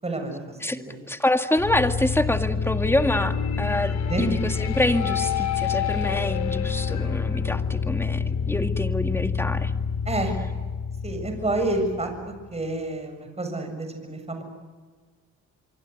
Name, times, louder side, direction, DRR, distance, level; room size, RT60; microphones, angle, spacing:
voice 1, 0.0-0.4 0.7-1.0 4.1-4.3 10.1-10.3 11.0-14.4, right 2 dB, 20° right, 5 dB, 7.3 m, -29 dB
voice 2, 1.1-9.7, left 1 dB, 10° left, 7 dB, 2.0 m, -26 dB
sound 1, 1.6-12.5, left 6 dB, 65° left, 3.5 m, -27 dB
25.5 x 24.5 x 8.3 m, 1.4 s
cardioid pair, 90°, 30 cm